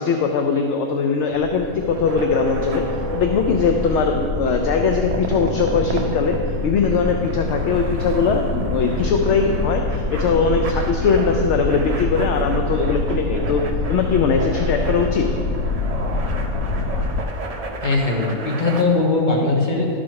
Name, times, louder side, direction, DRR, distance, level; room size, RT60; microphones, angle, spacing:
voice 1, 0.0-2.8 3.1-6.4 6.6-13.6 13.9-15.3, left 5 dB, 65° left, 4 dB, 0.8 m, -20 dB
sound 1, 1.3-17.2, left 3 dB, 85° left, 1.1 m, -26 dB
sound 2, 1.8-18.8, right 3 dB, 65° right, 0.3 m, -33 dB
sound 3, 2.2-6.8, left 1 dB, 25° right, 1.1 m, -33 dB
voice 2, 17.8-19.9, left 3 dB, 35° left, -1 dB, 1.2 m, -20 dB
11.5 x 4.2 x 4.7 m, 2.2 s
omnidirectional pair, 1.5 m